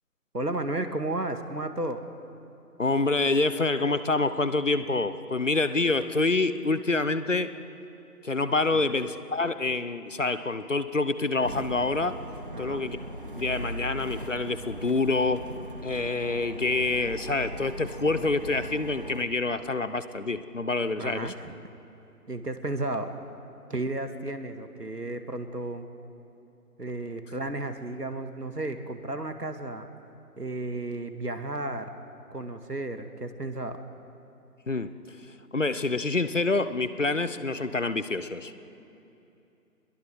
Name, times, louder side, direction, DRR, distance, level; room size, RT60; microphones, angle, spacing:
voice 1, 0.3-2.0 8.7-9.0 12.5-12.9 21.0-21.5 22.3-23.1 23.7-25.9 26.8-29.9 30.4-32.0 32.3-33.8, right 2 dB, 80° right, 8 dB, 2.0 m, -33 dB
voice 2, 2.8-7.5 8.2-12.2 12.6-13.0 13.4-15.5 15.8-21.3 34.7-35.3 35.5-38.6, left 3 dB, 50° left, 13 dB, 0.9 m, -27 dB
sound 1, 11.4-19.3, right 1 dB, 35° right, 1.0 m, -39 dB
24.0 x 21.5 x 6.3 m, 2.8 s
figure-of-eight pair, 165°, 47 cm